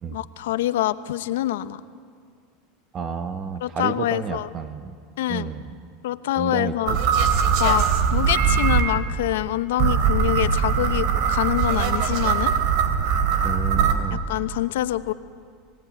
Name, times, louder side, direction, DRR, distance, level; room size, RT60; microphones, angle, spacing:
voice 1, 0.1-1.8 3.6-4.5 5.2-5.5 6.0-7.0 7.6-12.5 14.1-15.1, left 14 dB, 80° left, 13 dB, 0.9 m, -25 dB
voice 2, 2.9-4.9 5.3-5.7 6.4-6.7 13.4-14.2, right 6 dB, 35° right, 9 dB, 1.1 m, -31 dB
sound 1, 6.9-8.8 9.8-13.9, right 7 dB, 65° right, 3.1 m, -21 dB
27.5 x 18.0 x 9.3 m, 2.1 s
supercardioid pair, 115°, 0 cm